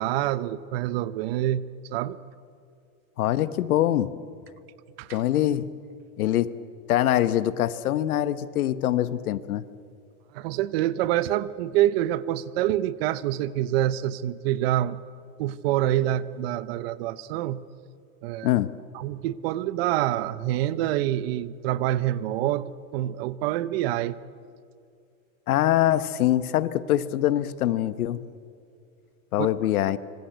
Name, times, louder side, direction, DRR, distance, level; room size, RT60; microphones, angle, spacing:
voice 1, 0.0-1.6 1.9-2.2 5.0-5.2 10.3-15.0 15.4-17.6 18.2-18.5 18.9-24.2 29.4-29.5, right 13 dB, 45° right, 16 dB, 0.8 m, -26 dB
voice 2, 3.2-4.1 5.1-5.7 6.2-6.6 6.9-9.6 18.4-18.8 25.5-28.3 29.3-30.0, left 12 dB, 85° left, 14 dB, 1.2 m, -24 dB
25.5 x 24.5 x 8.0 m, 2.4 s
supercardioid pair, 160°, 42 cm